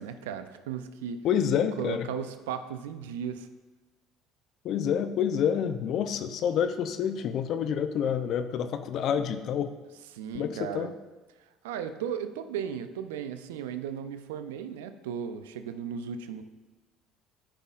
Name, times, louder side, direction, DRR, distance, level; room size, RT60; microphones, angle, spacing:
voice 1, 0.0-1.2 1.8-3.5 10.1-10.9 11.6-16.4, right 8 dB, 80° right, 10 dB, 0.5 m, -36 dB
voice 2, 1.2-2.1 4.6-9.7 10.3-10.9, left 8 dB, 60° left, 10 dB, 0.6 m, -28 dB
13.5 x 5.6 x 2.5 m, 1.2 s
hypercardioid pair, 65°, 0 cm